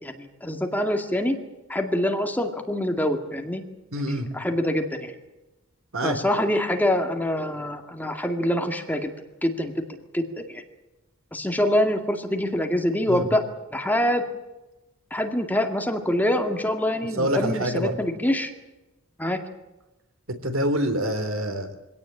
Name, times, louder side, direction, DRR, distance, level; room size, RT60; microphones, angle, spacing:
voice 1, 0.0-1.4 1.7-3.6 4.1-5.1 6.0-9.1 9.4-9.9 10.1-10.6 11.3-13.5 13.7-14.2 15.1-18.5 19.2-19.4, left 1 dB, 10° left, 5 dB, 2.1 m, -25 dB
voice 2, 3.9-4.3 5.9-6.2 13.1-13.3 17.2-18.0 20.4-21.7, right 1 dB, 70° right, 8 dB, 3.6 m, -26 dB
24.5 x 17.5 x 8.9 m, 1.0 s
head